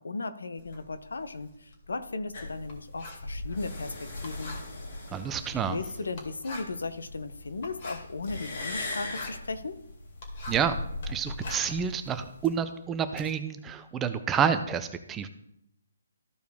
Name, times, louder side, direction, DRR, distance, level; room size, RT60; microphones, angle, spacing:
voice 1, 0.0-4.6 5.7-9.8, left 3 dB, 85° left, 11 dB, 0.8 m, -36 dB
Writing, 0.6-10.8 11.1-13.3, left 2 dB, 40° left, 2.2 m, -46 dB
sound 1, 2.3-12.5, left 2 dB, 55° left, 2.3 m, -40 dB
voice 2, 5.1-5.8 10.5-10.8 11.1-15.3, right 7 dB, 10° right, 9 dB, 0.5 m, -29 dB
13.5 x 4.7 x 3.5 m, 0.76 s
hypercardioid pair, 160°, 0 cm